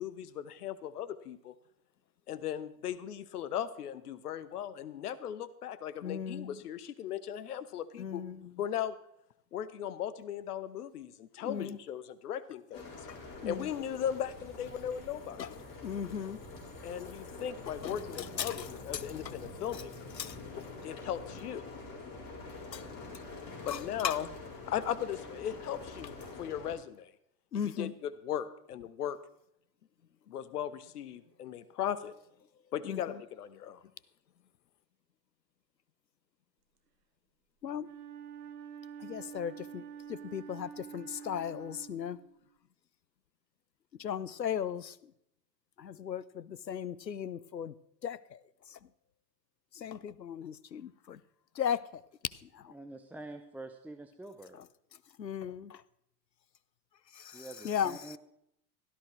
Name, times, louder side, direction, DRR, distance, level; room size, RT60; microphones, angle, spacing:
voice 1, 0.0-1.5 2.3-8.2 8.6-9.0 9.5-12.9 13.4-15.5 16.8-20.1 20.8-21.7 23.6-24.3 24.7-27.1 27.8-29.2 30.3-32.1 32.7-33.8, left 10 dB, 65° left, 16 dB, 1.0 m, -37 dB
voice 2, 6.0-6.6 8.0-8.6 11.4-11.8 12.9-13.7 15.4-15.5 15.8-16.4 17.8-19.3 19.7-19.8 20.2-20.7 22.7-22.9 23.7-24.2 27.5-27.9 32.8-33.2 37.6-37.9 39.0-42.2 44.0-45.1 45.8-47.7 48.0-48.4 48.7-48.9 49.7-51.2 51.5-52.7 54.5-54.7 55.2-55.8 57.1-58.2, left 8 dB, 90° left, 20 dB, 0.6 m, -37 dB
sound 1, 12.7-26.8, left 3 dB, 40° left, 4.4 m, -46 dB
Wind instrument woodwind instrument, 37.8-42.5, right 8 dB, 65° right, 1.3 m, -47 dB
voice 3, 52.7-54.6 57.3-58.2, right 2 dB, 5° right, 6 dB, 0.5 m, -46 dB
16.5 x 13.0 x 3.1 m, 0.76 s
figure-of-eight pair, 80°, 49 cm